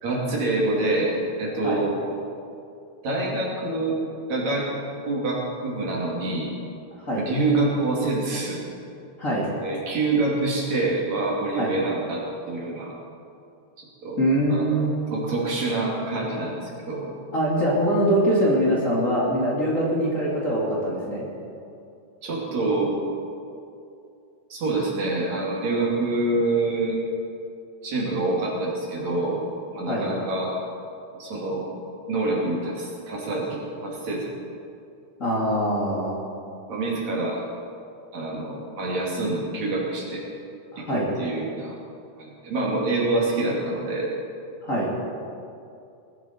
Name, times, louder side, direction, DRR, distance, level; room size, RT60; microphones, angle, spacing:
voice 1, 0.0-1.9 3.0-4.0 4.3-6.5 7.2-8.6 9.6-12.9 14.0-14.2 14.5-14.7 15.1-17.1 22.2-22.9 24.5-27.0 27.8-29.4 29.7-30.5 31.2-31.7 32.1-34.4 36.7-37.4 38.1-40.2 40.8-41.7 42.2-44.1, right 2 dB, 65° right, -4 dB, 4.0 m, -26 dB
voice 2, 9.2-9.5 11.6-11.7 14.2-14.9 17.3-21.3 29.9-30.1 35.2-36.2 40.7-41.1 44.6-44.9, equal, 25° left, -6 dB, 2.6 m, -23 dB
20.0 x 12.0 x 4.5 m, 2.6 s
omnidirectional pair, 3.4 m